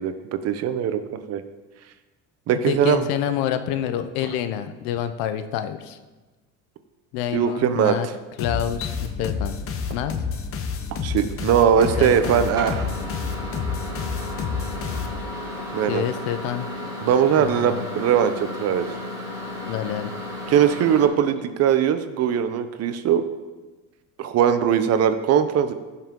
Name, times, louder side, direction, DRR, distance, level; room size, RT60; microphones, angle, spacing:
voice 1, 0.0-1.4 2.5-3.1 7.3-8.1 11.0-12.8 15.7-16.0 17.0-18.9 20.5-23.2 24.2-25.7, right 8 dB, 45° right, 10 dB, 0.7 m, -20 dB
voice 2, 2.5-6.0 7.1-8.1 8.4-9.6 9.9-10.1 12.0-12.5 15.9-16.7 17.3-17.9 19.7-20.1, left 10 dB, 85° left, 10 dB, 0.8 m, -27 dB
sound 1, 8.4-15.5, left 5 dB, 40° left, 0.9 m, -29 dB
Microwave oven, 11.8-21.1, left 1 dB, 10° right, 3.2 m, -34 dB
15.5 x 5.7 x 3.8 m, 1.2 s
cardioid pair, 140°, 34 cm